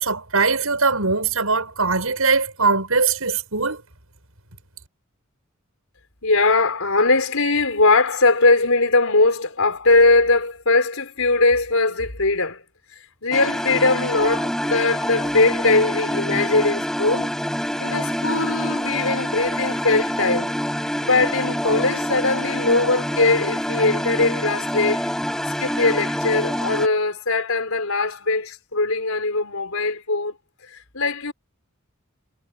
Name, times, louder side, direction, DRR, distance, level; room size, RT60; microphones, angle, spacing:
voice 1, 0.0-3.8, right 4 dB, 85° right, 6.8 m, -21 dB
voice 2, 6.2-12.6 13.2-17.4 17.8-20.6 21.0-25.0 25.5-30.4 30.6-31.3, left 3 dB, 80° left, 4.4 m, -20 dB
sound 1, 13.3-26.9, equal, 5° left, 4.6 m, -26 dB
head